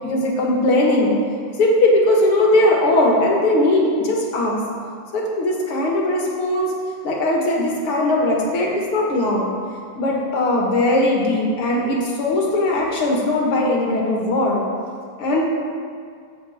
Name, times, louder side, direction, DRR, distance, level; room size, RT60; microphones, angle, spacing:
voice 1, 0.0-1.1 1.6-4.6 5.1-6.7 7.0-9.5 10.0-14.6 15.2-15.5, left 1 dB, 75° left, -2 dB, 2.6 m, -19 dB
14.0 x 8.1 x 3.6 m, 2.2 s
omnidirectional pair, 2.4 m